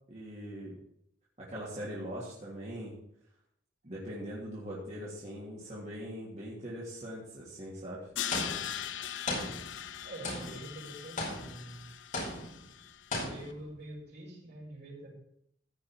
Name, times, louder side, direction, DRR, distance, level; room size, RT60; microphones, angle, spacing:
voice 1, 0.1-0.8 1.4-2.9 3.8-8.1, equal, 35° right, -7 dB, 3.1 m, -41 dB
Crash cymbal, 8.2-13.2, left 10 dB, 70° left, 0.6 m, -40 dB
sound 1, 8.3-8.9 9.3-10.0 10.2-10.7 11.2-11.7 12.1-12.7 13.1-13.7, left 2 dB, 45° left, 5.6 m, -37 dB
voice 2, 10.0-11.9 13.2-15.1, right 1 dB, 60° right, -4 dB, 6.4 m, -46 dB
15.5 x 6.2 x 6.1 m, 0.71 s
head